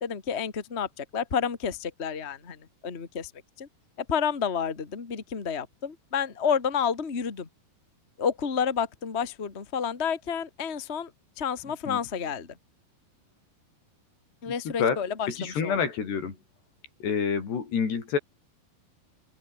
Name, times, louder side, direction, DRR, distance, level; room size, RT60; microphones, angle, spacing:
voice 1, 0.0-3.3 3.6-3.7 4.0-7.5 8.2-11.1 11.4-12.5 14.4-15.8, left 7 dB, 25° left, 1.5 m, -30 dB
voice 2, 14.5-16.4 17.0-18.2, left 6 dB, 90° left, 6.9 m, -28 dB
omnidirectional pair, 4.7 m